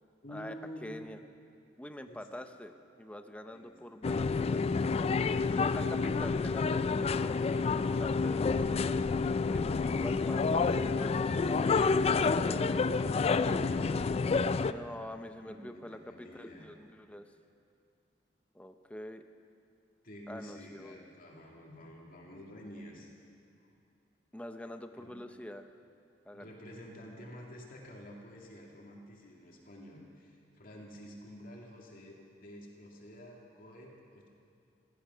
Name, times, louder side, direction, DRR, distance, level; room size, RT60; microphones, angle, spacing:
voice 1, 0.2-1.2 2.1-2.5 3.5-3.8 5.2-6.1 15.4-16.6 20.0-23.1 23.6-23.7 25.0-25.1 26.3-34.3, equal, 50° left, -2 dB, 2.4 m, -49 dB
voice 2, 0.8-1.2 1.8-2.7 3.0-4.6 5.6-9.0 9.5-11.9 12.3-13.0 14.6-17.2 18.5-19.2 20.3-21.0 24.3-25.7 26.2-26.5, left 1 dB, 5° left, 7 dB, 0.7 m, -45 dB
sound 1, 4.0-14.7, left 4 dB, 35° left, 0.3 m, -29 dB
17.0 x 14.0 x 5.6 m, 2.4 s
head